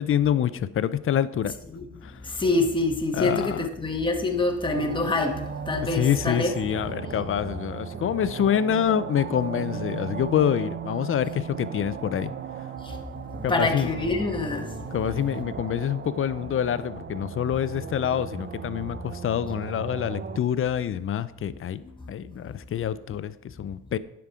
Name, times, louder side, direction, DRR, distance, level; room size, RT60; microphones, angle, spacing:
voice 1, 0.0-1.5 2.0-2.2 3.1-3.7 5.9-12.3 13.4-13.9 14.9-21.8 22.1-24.0, left 9 dB, 45° left, 0.5 m, -26 dB
voice 2, 2.4-6.5 13.5-14.7, left 2 dB, 15° left, 1.4 m, -25 dB
sound 1, 4.7-20.4, right 7 dB, 35° right, 0.7 m, -36 dB
9.6 x 5.9 x 5.0 m
cardioid pair, 90°, 30 cm